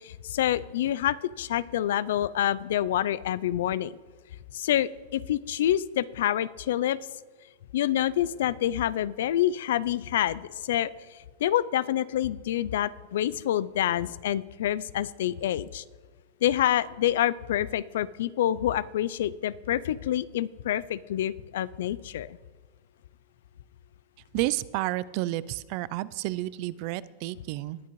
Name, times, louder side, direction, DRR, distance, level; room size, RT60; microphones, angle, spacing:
voice 1, 0.0-3.9 4.5-7.0 7.7-10.9 11.4-15.8 16.4-22.4, left 12 dB, 70° left, 19 dB, 0.4 m, -27 dB
voice 2, 24.3-27.8, right 17 dB, 45° right, 19 dB, 0.3 m, -31 dB
19.0 x 8.3 x 3.1 m, 1.4 s
supercardioid pair, 160°, 0 cm